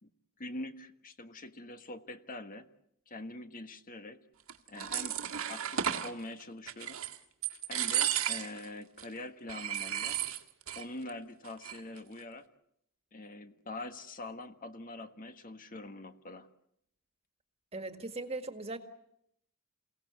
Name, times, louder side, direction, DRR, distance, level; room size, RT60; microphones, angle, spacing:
voice 1, 0.4-2.7 3.1-4.2 4.7-5.1 5.5-7.0 7.7-10.2 10.7-12.4 13.1-16.5, left 2 dB, 40° left, 8 dB, 1.4 m, -44 dB
sound 1, 4.5-6.1 6.7-7.2 7.4-8.7 9.0-9.1 9.5-10.8 11.1-11.2 11.5-12.0, right 10 dB, 75° right, 1.9 m, -34 dB
voice 2, 17.7-18.8, right 2 dB, 30° right, 7 dB, 1.9 m, -39 dB
29.0 x 17.5 x 8.2 m, 0.76 s
head